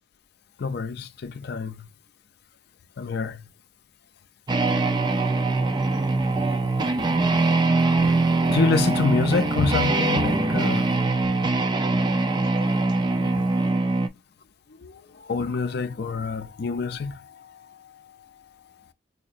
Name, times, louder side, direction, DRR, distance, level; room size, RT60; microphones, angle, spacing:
voice 1, 0.6-1.9 3.0-3.5 7.3-7.4 8.0-10.9 13.1-13.5 14.8-18.3, left 4 dB, 55° left, 0.4 m, -27 dB
sound 1, 4.5-14.1, right 3 dB, 20° right, 0.3 m, -22 dB
4.2 x 2.8 x 2.5 m
head